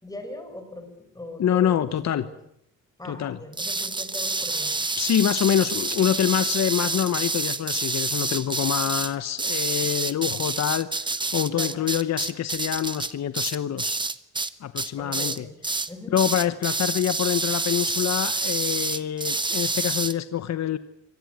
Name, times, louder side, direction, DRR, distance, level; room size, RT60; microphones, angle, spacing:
voice 1, 0.0-2.3 3.0-4.7 11.5-11.8 15.0-15.5 15.9-16.1, left 1 dB, 10° left, 7 dB, 5.6 m, -40 dB
voice 2, 1.4-2.3 3.1-3.4 5.0-14.0 14.6-15.5 16.1-20.8, left 10 dB, 60° left, 12 dB, 1.0 m, -26 dB
sound 1, 3.5-14.5 14.8-15.4 15.6-15.9 16.2-20.1, right 3 dB, 15° right, 1.1 m, -28 dB
25.0 x 19.0 x 9.4 m, 0.75 s
wide cardioid pair, 140°, 30 cm